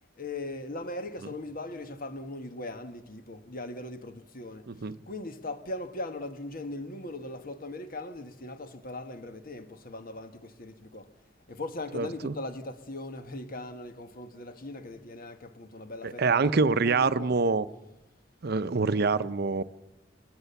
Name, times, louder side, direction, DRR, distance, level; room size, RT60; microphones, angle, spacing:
voice 1, 0.2-4.7 5.1-11.1 11.5-17.4, left 2 dB, 50° left, 1.5 m, -39 dB
voice 2, 4.7-5.0 11.9-12.4 16.0-17.7 18.4-19.6, right 4 dB, 55° right, 0.7 m, -25 dB
22.0 x 19.5 x 7.0 m
head